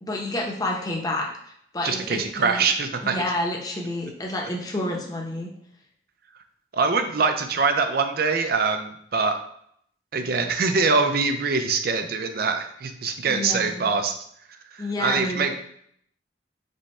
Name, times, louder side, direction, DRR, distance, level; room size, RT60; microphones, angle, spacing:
voice 1, 0.0-2.7 3.0-5.5 13.3-14.0 14.8-15.5, left 1 dB, 20° left, 0 dB, 0.7 m, -29 dB
voice 2, 1.8-3.2 6.7-9.4 10.1-14.1 14.7-15.5, right 4 dB, 55° right, 7 dB, 0.5 m, -23 dB
5.4 x 2.2 x 4.1 m, 0.68 s
head